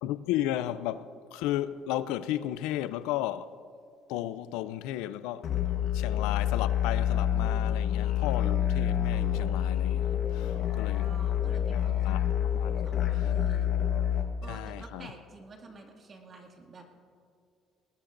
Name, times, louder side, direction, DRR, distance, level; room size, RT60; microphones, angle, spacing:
voice 1, 0.0-3.5 4.1-5.5 5.9-11.1 11.8-12.8 13.1-13.3 14.5-15.1, left 13 dB, 90° left, 0.5 m, -34 dB
sound 1, 5.4-14.2, left 10 dB, 60° left, 1.2 m, -27 dB
voice 2, 10.4-12.4 12.8-13.7 14.4-16.9, right 3 dB, 40° right, 2.2 m, -50 dB
19.5 x 19.0 x 2.6 m
cardioid pair, 95°, 0 cm